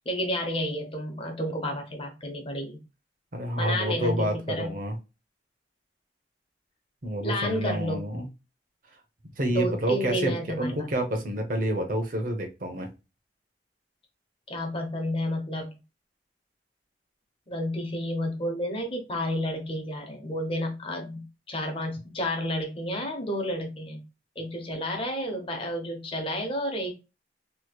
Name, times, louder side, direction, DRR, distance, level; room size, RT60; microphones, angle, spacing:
voice 1, 0.0-2.8 3.6-4.7 7.2-8.0 9.5-10.9 14.5-15.8 17.5-24.0 24.4-26.9, equal, 30° left, 0.9 m, -31 dB
voice 2, 3.3-5.0 7.0-8.3 9.4-12.9, right 1 dB, 50° right, 0.9 m, -28 dB
3.1 x 3.1 x 2.3 m
head